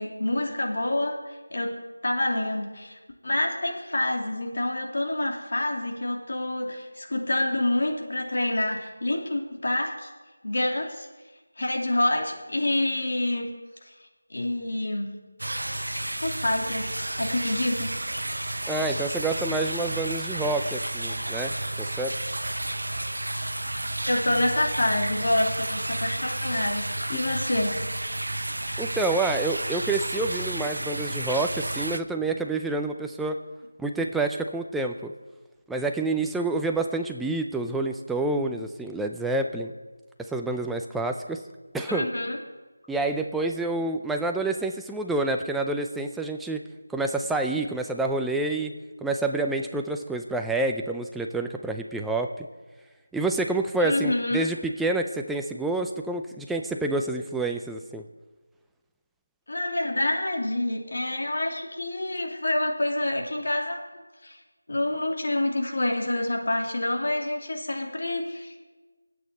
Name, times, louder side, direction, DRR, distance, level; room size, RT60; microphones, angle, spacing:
voice 1, 0.0-1.8 2.0-10.1 10.4-11.1 11.6-13.5 13.8-13.9 14.3-15.1 16.2-18.0 24.1-27.8 41.9-42.4 53.8-54.5 59.5-63.8 64.2-64.4 64.7-68.6, left 1 dB, 65° left, 1 dB, 2.5 m, -27 dB
sound 1, 15.4-32.0, right 1 dB, 85° right, 0.6 m, -31 dB
voice 2, 18.7-22.1 28.8-33.4 33.8-35.1 35.7-39.7 40.3-41.4 41.7-42.1 42.9-46.6 46.9-48.7 49.0-52.5 53.1-58.0, right 2 dB, ahead, 4 dB, 0.4 m, -28 dB
24.5 x 8.5 x 4.2 m, 1.2 s
figure-of-eight pair, 170°, 0 cm